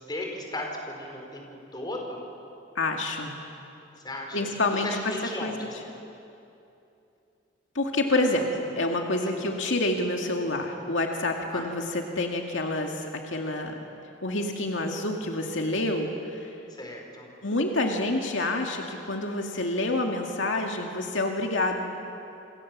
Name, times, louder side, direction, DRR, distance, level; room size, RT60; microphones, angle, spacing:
voice 1, 0.0-1.5 1.7-2.2 4.0-4.5 4.8-5.7 9.2-9.5 11.5-11.7 16.8-17.3, left 1 dB, 20° left, 1 dB, 4.8 m, -36 dB
voice 2, 2.8-3.3 4.3-4.9 5.4-5.5 7.7-13.8 14.2-16.6 17.4-21.8, left 2 dB, 75° left, 2 dB, 2.2 m, -28 dB
28.0 x 26.5 x 7.5 m, 2.7 s
head